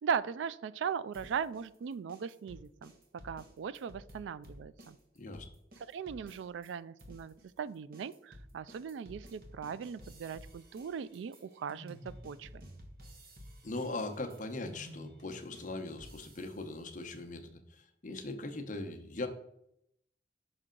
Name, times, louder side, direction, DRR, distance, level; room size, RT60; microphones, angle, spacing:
voice 1, 0.0-2.9 3.2-5.0 5.9-12.5, right 7 dB, 80° right, 18 dB, 0.3 m, -38 dB
sound 1, 1.1-6.7 7.0-16.7, equal, 50° right, 1.1 m, -53 dB
voice 2, 5.1-5.5 13.6-19.3, left 2 dB, 45° left, 5 dB, 0.8 m, -40 dB
6.0 x 5.4 x 3.8 m, 0.76 s
head